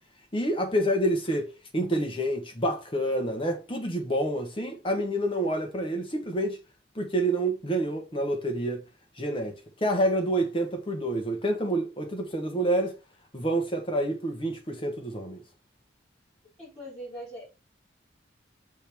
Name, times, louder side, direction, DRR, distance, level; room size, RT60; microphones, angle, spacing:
voice 1, 0.3-6.6 6.9-8.8 9.2-12.9 13.3-15.4, right 1 dB, 25° left, 1.1 m, -28 dB
voice 2, 16.6-17.5, equal, 5° left, 4.4 m, -41 dB
6.8 x 3.5 x 4.4 m
head